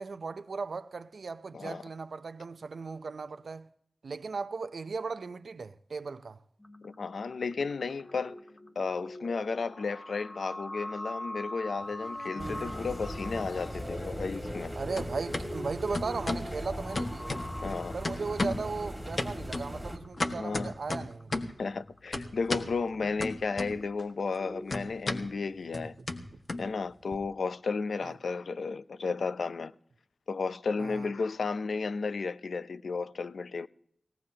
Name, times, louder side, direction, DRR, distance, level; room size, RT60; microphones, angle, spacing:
voice 1, 0.0-3.7 4.0-6.4 12.4-12.8 14.7-17.4 17.9-21.4 25.2-25.3 28.0-28.1 30.8-31.1, right 4 dB, 80° right, 0.6 m, -37 dB
sound 1, 6.6-24.8, left 1 dB, 30° left, 2.0 m, -44 dB
voice 2, 6.8-8.3 8.8-14.7 17.6-17.9 20.4-20.7 21.6-25.9 26.6-29.7 30.3-33.7, left 4 dB, 85° left, 0.5 m, -33 dB
sound 2, 11.8-12.8 13.1-14.7 14.9-15.5 15.9-16.5 16.9-17.7 18.0-18.7 19.2-21.6 22.1-22.7 23.2-24.0 24.3-27.2, left 2 dB, 50° left, 1.6 m, -35 dB
sound 3, 12.4-20.0, equal, ahead, 2.1 m, -40 dB
21.5 x 17.5 x 2.9 m
wide cardioid pair, 70°, 0 cm